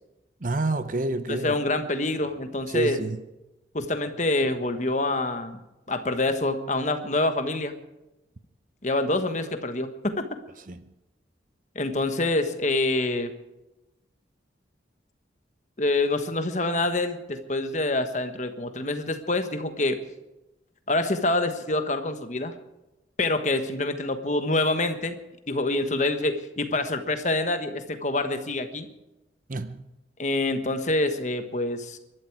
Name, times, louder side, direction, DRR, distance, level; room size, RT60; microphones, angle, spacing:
voice 1, 0.4-1.6 2.7-3.2 10.7-10.9 29.5-29.8, right 2 dB, 45° right, 0.7 m, -29 dB
voice 2, 1.3-3.0 3.7-5.6 5.9-7.7 8.8-10.3 11.7-13.3 15.8-20.0 20.9-22.5 23.2-25.2 25.5-28.9 30.2-32.0, left 2 dB, 40° left, 1.3 m, -26 dB
23.0 x 12.0 x 4.7 m
head